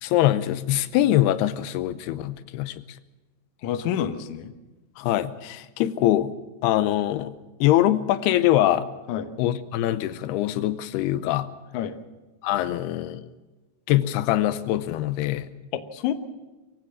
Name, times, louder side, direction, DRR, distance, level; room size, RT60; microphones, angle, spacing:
voice 1, 0.0-3.0 5.0-6.3 6.6-7.3 7.6-8.9 9.4-11.5 12.4-13.3 13.9-15.5, left 13 dB, 85° left, 14 dB, 2.8 m, -23 dB
voice 2, 3.6-4.5 9.1-9.3 11.7-12.0 15.7-16.1, left 10 dB, 65° left, 10 dB, 2.0 m, -28 dB
23.5 x 15.5 x 7.3 m, 1.2 s
omnidirectional pair, 4.5 m